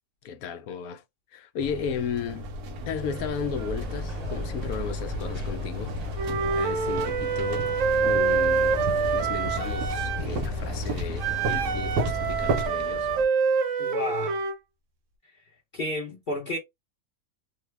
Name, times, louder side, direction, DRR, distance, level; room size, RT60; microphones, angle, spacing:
voice 1, 0.2-1.0 1.3-2.5 2.8-7.7 8.0-8.8 9.1-13.1, left 6 dB, 75° left, 1.0 m, -34 dB
sound 1, 1.6-12.7, equal, 85° right, 1.3 m, -33 dB
sound 2, 3.2-13.2, left 1 dB, 35° right, 0.8 m, -37 dB
Wind instrument woodwind instrument, 6.2-10.2 11.2-14.6, right 5 dB, 65° right, 0.8 m, -26 dB
voice 2, 13.8-14.4 15.7-16.6, left 1 dB, 40° left, 0.9 m, -31 dB
3.2 x 2.2 x 3.1 m
omnidirectional pair, 1.6 m